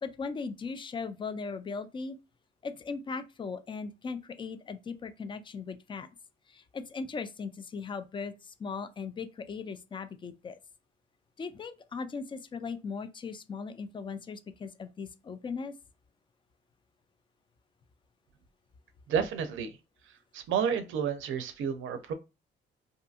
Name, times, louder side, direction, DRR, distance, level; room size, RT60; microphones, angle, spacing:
voice 1, 0.0-2.2 2.6-6.1 6.5-10.6 11.4-15.7, left 5 dB, 25° left, 0.4 m, -38 dB
voice 2, 19.1-19.8 20.3-22.1, right 7 dB, 75° right, 0.5 m, -30 dB
2.6 x 2.6 x 2.3 m
cardioid pair, 90°, 20 cm